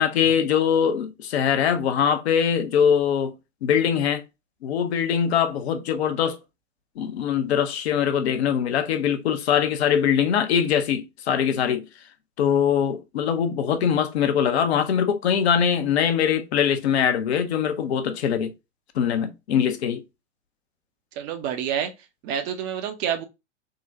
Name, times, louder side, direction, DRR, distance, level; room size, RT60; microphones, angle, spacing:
voice 1, 0.0-3.3 3.6-4.2 4.6-6.4 7.0-11.9 12.4-18.5 18.9-20.0, left 8 dB, 60° left, 0.7 m, -22 dB
voice 2, 21.2-21.9 22.2-23.2, right 9 dB, 30° right, 0.5 m, -28 dB
3.7 x 2.1 x 2.6 m
figure-of-eight pair, 100°, 36 cm